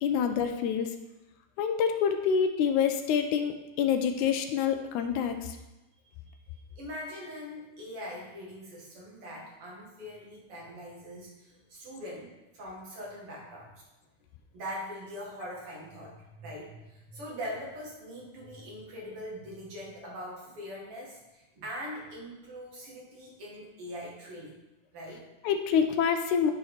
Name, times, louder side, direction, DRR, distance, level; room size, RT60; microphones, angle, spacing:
voice 1, 0.0-0.9 1.6-5.6 25.4-26.5, left 7 dB, 80° left, 6 dB, 1.9 m, -27 dB
voice 2, 6.7-13.7 14.5-24.6 24.9-25.3, equal, 50° right, -3 dB, 2.6 m, -42 dB
11.0 x 4.4 x 4.0 m, 1.0 s
omnidirectional pair, 3.6 m